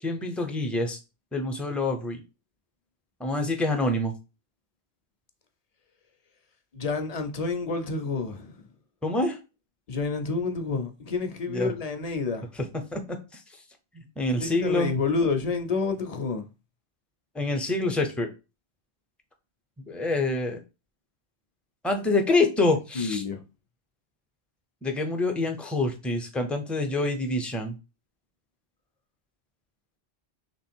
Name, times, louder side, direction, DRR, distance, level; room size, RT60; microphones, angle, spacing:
voice 1, 0.0-1.0 1.3-2.2 3.2-4.1 9.0-9.4 11.5-11.7 12.6-13.4 13.9-14.9 17.3-18.3 19.8-20.6 21.8-23.2 24.8-27.8, left 2 dB, ahead, 0.5 m, -26 dB
voice 2, 6.7-8.6 9.9-12.5 14.4-16.5 22.9-23.4, left 4 dB, 45° left, 0.6 m, -29 dB
3.4 x 3.1 x 4.4 m
omnidirectional pair, 1.1 m